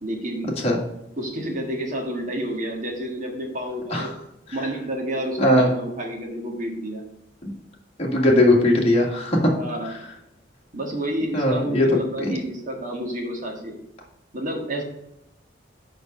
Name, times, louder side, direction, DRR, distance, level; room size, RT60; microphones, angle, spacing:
voice 1, 0.0-0.6 1.2-4.1 4.5-7.0 9.5-9.9 10.7-13.7 14.3-14.8, right 1 dB, 45° right, 1 dB, 1.7 m, -30 dB
voice 2, 5.4-5.7 7.4-7.5 8.0-9.6 11.3-12.3, left 1 dB, 35° left, -2 dB, 1.7 m, -19 dB
5.2 x 5.1 x 6.5 m, 0.83 s
head